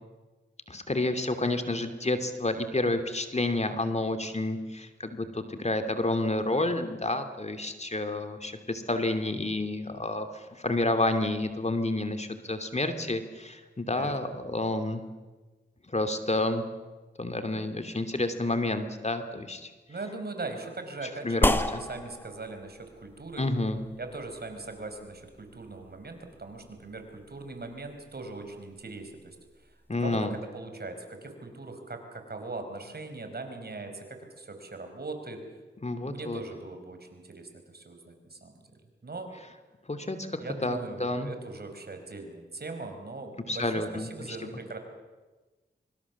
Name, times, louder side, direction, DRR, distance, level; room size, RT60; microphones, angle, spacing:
voice 1, 0.7-15.0 15.9-16.6 17.2-19.7 21.2-21.8 23.4-23.8 29.9-30.3 35.8-36.4 39.9-41.3 43.5-44.5, left 2 dB, 35° left, 8 dB, 2.8 m, -30 dB
voice 2, 13.9-14.3 19.9-23.4 24.0-29.4 29.6-29.7 30.0-30.3 30.5-35.4 36.0-38.5 39.0-39.3 40.4-44.8, right 3 dB, 55° right, 6 dB, 5.2 m, -40 dB
sound 1, 21.4-30.2, left 1 dB, 10° left, 1.6 m, -35 dB
24.5 x 24.0 x 7.3 m, 1.2 s
cardioid pair, 45°, 20 cm